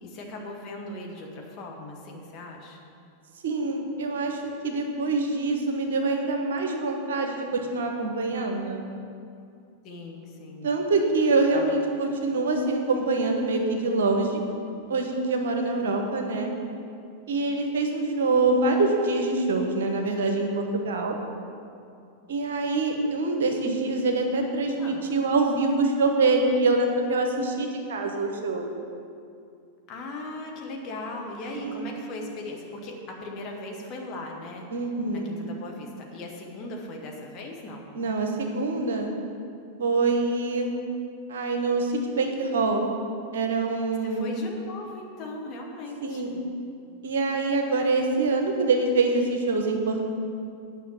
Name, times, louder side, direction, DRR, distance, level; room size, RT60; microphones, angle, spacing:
voice 1, 0.0-2.8 9.8-10.7 24.8-25.0 29.9-34.7 35.1-37.9 44.0-46.4, left 2 dB, 40° left, 0 dB, 1.6 m, -38 dB
voice 2, 3.4-8.8 10.6-14.4 14.9-16.5 17.3-21.2 22.3-28.7 31.5-31.9 34.7-35.3 37.9-39.1 39.8-40.7 41.3-42.8 43.3-44.3 46.0-46.3 47.0-50.1, right 3 dB, 60° right, 3 dB, 1.2 m, -25 dB
9.9 x 5.7 x 7.3 m, 2.4 s
figure-of-eight pair, 90°, 0 cm